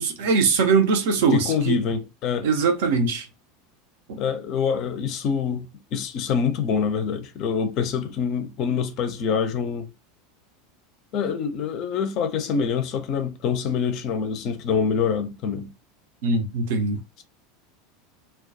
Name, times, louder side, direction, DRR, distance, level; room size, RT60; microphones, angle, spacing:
voice 1, 0.0-1.8 2.4-3.3 4.1-4.2 16.2-17.0, right 4 dB, 60° right, 0.5 m, -21 dB
voice 2, 1.3-2.5 4.2-9.9 11.1-15.7, left 6 dB, 45° left, 0.5 m, -25 dB
2.2 x 2.1 x 2.6 m
figure-of-eight pair, 80°, 0 cm